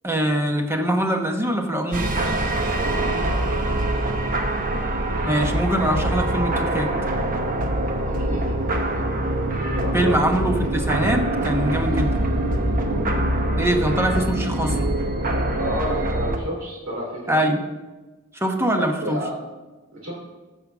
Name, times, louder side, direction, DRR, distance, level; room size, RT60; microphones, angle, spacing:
voice 1, 0.0-2.1 5.2-6.9 9.9-12.2 13.6-14.9 17.3-17.6 18.3-19.2, right 1 dB, 10° right, 3 dB, 1.1 m, -23 dB
sound 1, 1.9-16.4, right 1 dB, 40° right, 1.0 m, -24 dB
voice 2, 2.7-4.1 8.0-9.0 9.7-10.2 12.8-13.1 15.2-17.5 19.0-19.5 19.9-20.2, equal, 75° right, -5 dB, 3.0 m, -32 dB
14.5 x 5.2 x 6.1 m, 1.2 s
head